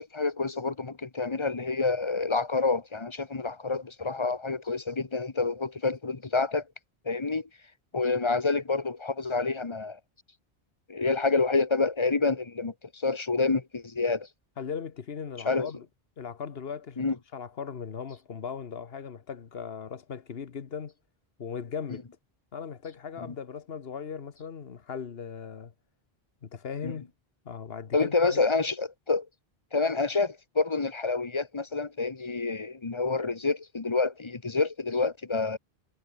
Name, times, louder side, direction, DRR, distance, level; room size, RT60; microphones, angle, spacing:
voice 1, 0.0-6.6 7.0-7.5 7.9-10.0 10.9-14.3 15.5-15.7 17.0-17.1 26.8-26.9 27.9-29.3 29.7-35.6, left 3 dB, 30° left, 1.1 m, -28 dB
voice 2, 14.6-15.9 16.2-17.0 17.3-20.9 21.4-22.1 22.5-25.7 26.4-27.1 27.4-28.5, left 6 dB, 75° left, 1.4 m, -38 dB
omnidirectional pair, 1.0 m